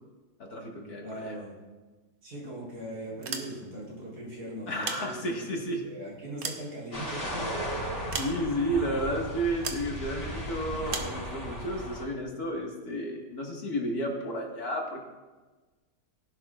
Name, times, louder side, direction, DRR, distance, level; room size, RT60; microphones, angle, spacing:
voice 1, 0.4-1.4 4.7-5.9 7.5-7.9 8.2-15.0, equal, 70° left, 0 dB, 2.3 m, -32 dB
voice 2, 1.0-1.5 2.2-8.1, right 1 dB, 75° right, -5 dB, 4.3 m, -40 dB
sound 1, 3.1-3.9 4.6-5.6 6.1-7.3 8.1-8.8 9.6-9.9 10.9-11.2, right 5 dB, 55° right, 1.3 m, -37 dB
sound 2, 6.9-12.0, equal, 35° left, 3.9 m, -36 dB
17.5 x 11.0 x 2.4 m, 1.2 s
omnidirectional pair, 1.7 m